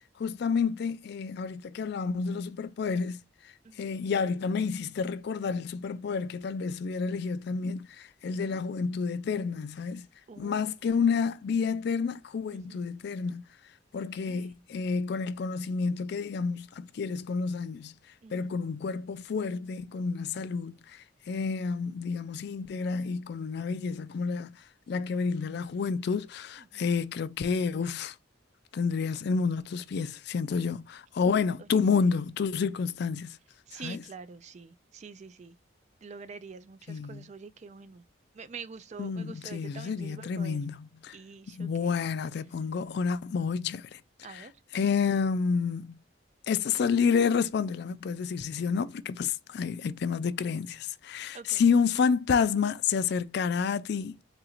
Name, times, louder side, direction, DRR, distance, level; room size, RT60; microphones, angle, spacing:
voice 1, 0.2-3.2 3.8-10.1 10.4-13.4 13.9-17.9 18.3-24.5 24.9-28.2 28.7-33.4 33.7-34.0 36.9-37.3 39.0-41.2 41.5-44.0 44.3-44.5 44.7-46.0 46.5-54.2, left 5 dB, 55° left, 0.3 m, -29 dB
voice 2, 8.2-8.6 10.3-10.8 12.5-12.9 14.0-14.5 18.2-18.5 26.6-26.9 31.6-32.1 33.7-35.6 36.0-38.0 38.3-40.6 41.1-42.0 44.2-44.5 51.3-51.6, right 5 dB, 35° right, 0.3 m, -46 dB
3.9 x 2.5 x 4.3 m
head